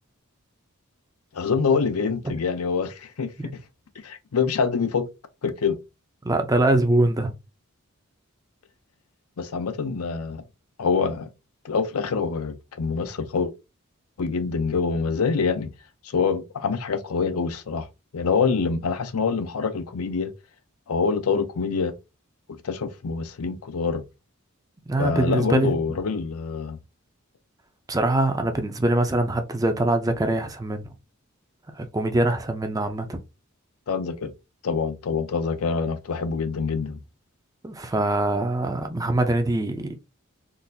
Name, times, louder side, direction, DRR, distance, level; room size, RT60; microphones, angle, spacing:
voice 1, 1.3-3.3 4.0-5.1 5.4-5.8 9.4-10.4 10.8-11.3 11.6-13.5 14.2-15.7 16.0-17.9 18.1-20.3 20.9-21.9 22.5-24.0 25.0-26.8 33.9-34.3 34.6-37.0, left 5 dB, 80° left, 0.5 m, -25 dB
voice 2, 6.2-7.3 24.9-25.7 27.9-30.8 31.8-33.2 37.6-40.0, right 2 dB, 15° right, 0.4 m, -23 dB
3.8 x 2.5 x 2.6 m
head